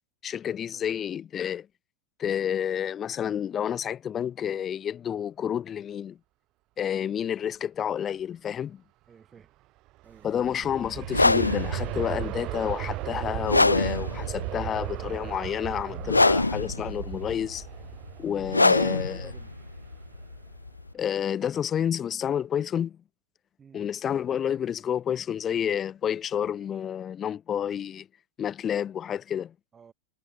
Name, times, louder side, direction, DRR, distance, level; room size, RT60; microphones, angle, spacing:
voice 1, 0.2-1.7 2.2-6.2 6.8-8.8 10.2-17.7 18.2-19.2 20.9-23.0 23.7-28.1 28.4-29.5, left 9 dB, 25° left, 0.9 m, -30 dB
voice 2, 9.1-9.5 10.0-10.4 18.4-19.5 23.6-23.9 29.7-29.9, right 6 dB, 20° right, 7.0 m, -51 dB
Aircraft, 9.9-20.7 21.2-21.3, right 18 dB, 40° right, 0.5 m, -36 dB
sound 1, 11.0-20.9, left 2 dB, 80° left, 0.9 m, -25 dB
figure-of-eight pair, 90°, 0 cm